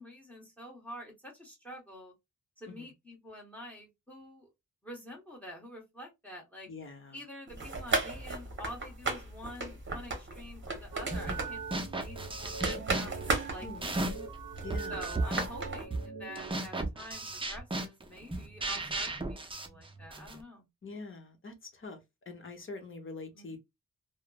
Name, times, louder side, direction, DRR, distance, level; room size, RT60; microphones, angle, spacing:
voice 1, 0.0-2.1 2.6-4.5 4.8-6.7 7.1-14.0 14.9-20.7 23.3-23.6, left 1 dB, 5° left, 1.2 m, -47 dB
voice 2, 6.7-7.2 13.6-14.1 14.6-15.1 20.8-22.0 22.3-23.6, left 3 dB, 40° left, 0.8 m, -44 dB
sound 1, 7.5-15.8, right 3 dB, 35° right, 0.9 m, -36 dB
sound 2, 10.9-16.5, right 5 dB, 65° right, 0.6 m, -43 dB
sound 3, 11.1-11.4 11.7-14.3 14.7-20.4, right 2 dB, 15° right, 0.4 m, -36 dB
3.1 x 2.0 x 2.2 m
wide cardioid pair, 130°, 32 cm